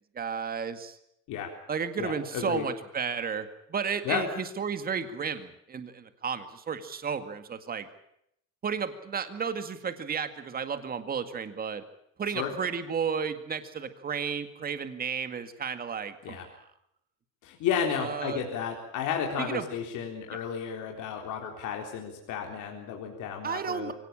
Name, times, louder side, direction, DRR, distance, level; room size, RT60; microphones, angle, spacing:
voice 1, 0.1-1.0 1.7-7.9 8.6-11.8 12.2-16.5 18.0-18.4 19.4-19.7 20.3-20.4 23.4-23.9, right 6 dB, 25° right, 9 dB, 2.0 m, -33 dB
voice 2, 2.0-2.7 4.0-4.2 12.3-12.5 16.2-16.4 17.4-23.9, left 8 dB, 55° left, 2 dB, 3.8 m, -32 dB
24.0 x 17.5 x 8.8 m, 0.75 s
cardioid pair, 150°, 36 cm